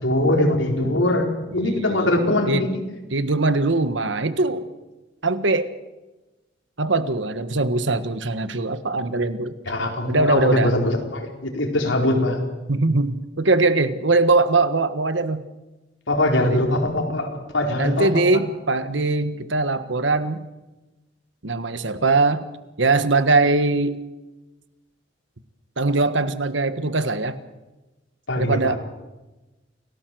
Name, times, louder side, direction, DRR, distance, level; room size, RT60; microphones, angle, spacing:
voice 1, 0.0-2.7 9.7-12.4 16.1-18.4 28.3-28.8, left 1 dB, 85° left, 2 dB, 4.5 m, -22 dB
voice 2, 1.5-2.1 2.5-2.7 3.1-4.7 5.2-5.7 6.8-9.5 10.1-10.7 12.7-15.4 16.5-16.6 17.8-20.4 21.4-22.4 22.8-24.0 25.8-27.4 28.4-28.8, right 3 dB, 70° right, 12 dB, 1.5 m, -21 dB
28.5 x 18.0 x 7.8 m, 1.1 s
head